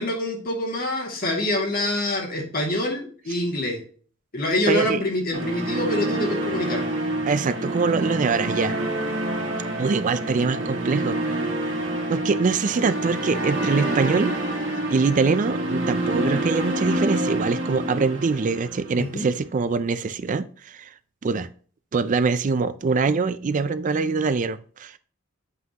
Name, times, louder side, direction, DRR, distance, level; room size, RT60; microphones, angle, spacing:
voice 1, 0.0-3.8 4.3-6.8 19.0-19.3, left 1 dB, 50° left, 1 dB, 2.1 m, -26 dB
voice 2, 4.7-5.0 7.3-8.8 9.8-11.2 12.1-14.6 14.9-20.9 21.2-21.5 21.9-25.0, right 4 dB, 40° right, 13 dB, 0.4 m, -23 dB
sound 1, 5.3-19.4, right 1 dB, 70° right, 1.8 m, -27 dB
7.6 x 5.8 x 2.9 m, 0.42 s
head